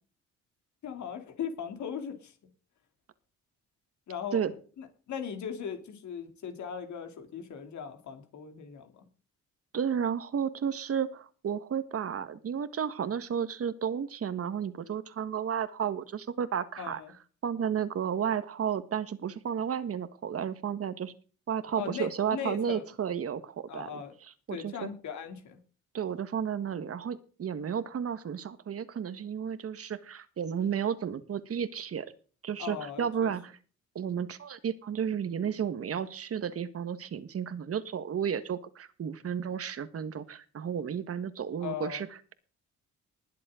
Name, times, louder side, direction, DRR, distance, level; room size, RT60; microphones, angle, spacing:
voice 1, 0.8-2.3 4.1-4.4 4.8-9.0 16.8-17.1 21.8-22.8 23.7-24.1 24.5-25.6 32.6-33.3 41.6-42.0, left 7 dB, 70° left, 6 dB, 2.9 m, -38 dB
voice 2, 9.7-17.0 17.4-21.1 21.5-24.9 25.9-32.1 32.4-33.6 33.9-42.3, right 8 dB, 50° right, 13 dB, 1.5 m, -32 dB
21.0 x 7.6 x 3.8 m, 0.38 s
cardioid pair, 90°, 30 cm